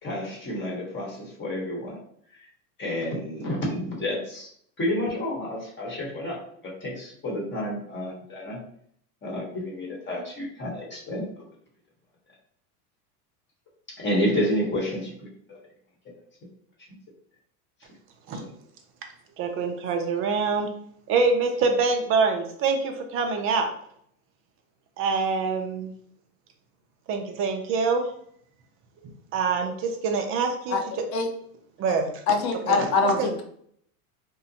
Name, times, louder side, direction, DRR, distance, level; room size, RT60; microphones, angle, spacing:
voice 1, 0.0-2.0 2.8-4.5 4.8-8.6 9.2-11.2 14.0-15.6 18.4-18.5, left 1 dB, 25° left, -3 dB, 1.0 m, -30 dB
voice 2, 19.4-20.7 21.1-23.7 25.0-25.9 27.1-28.0 29.3-30.8 31.8-32.1 32.7-33.3, right 4 dB, 30° right, 4 dB, 0.4 m, -25 dB
voice 3, 32.3-33.4, left 4 dB, 70° left, 4 dB, 0.7 m, -23 dB
2.6 x 2.1 x 2.6 m, 0.65 s
supercardioid pair, 110°, 44 cm